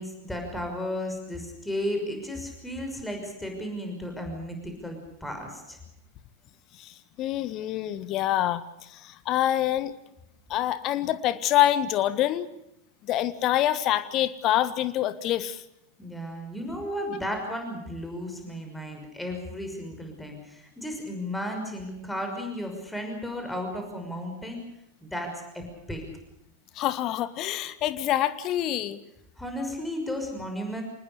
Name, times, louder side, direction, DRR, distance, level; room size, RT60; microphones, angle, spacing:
voice 1, 0.0-5.8 16.0-24.6 25.0-26.0 29.4-30.8, equal, 5° left, 4 dB, 5.9 m, -34 dB
voice 2, 6.7-9.9 10.5-12.5 13.0-15.6 26.7-29.0, left 12 dB, 35° left, 15 dB, 1.5 m, -26 dB
26.5 x 20.0 x 6.7 m, 0.82 s
figure-of-eight pair, 90°, 0 cm